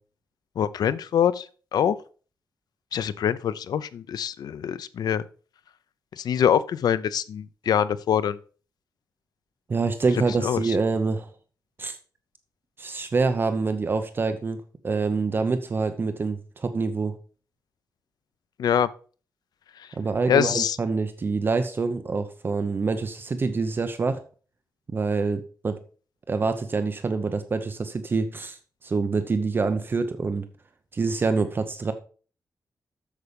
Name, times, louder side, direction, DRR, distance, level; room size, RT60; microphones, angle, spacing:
voice 1, 0.6-1.4 1.7-2.0 2.9-5.2 6.2-8.4 10.4-10.6 18.6-18.9 20.3-20.8, left 9 dB, 80° left, 16 dB, 0.5 m, -24 dB
voice 2, 9.7-11.3 11.8-12.0 12.8-14.6 14.8-17.2 20.0-24.2 24.9-25.8 26.3-30.5 30.9-31.9, right 4 dB, 30° right, 9 dB, 0.8 m, -26 dB
8.2 x 7.1 x 5.2 m, 0.39 s
wide cardioid pair, 170°, 7 cm